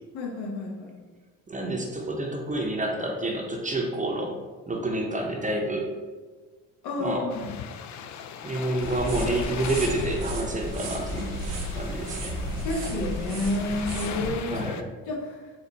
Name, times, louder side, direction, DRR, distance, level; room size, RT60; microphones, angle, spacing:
voice 1, 0.1-1.0 6.8-7.5 12.6-14.6 15.0-15.4, left 2 dB, 70° left, 0 dB, 1.0 m, -30 dB
voice 2, 1.5-4.4 4.7-5.9 7.0-7.3 8.4-11.3 11.7-12.4 14.5-14.8, right 1 dB, 20° right, 0 dB, 0.7 m, -29 dB
sound 1, 7.3-14.8, left 8 dB, 50° left, 0.4 m, -39 dB
sound 2, 8.8-14.3, right 1 dB, 70° right, 0.9 m, -33 dB
4.5 x 2.3 x 4.0 m, 1.3 s
supercardioid pair, 70°, 38 cm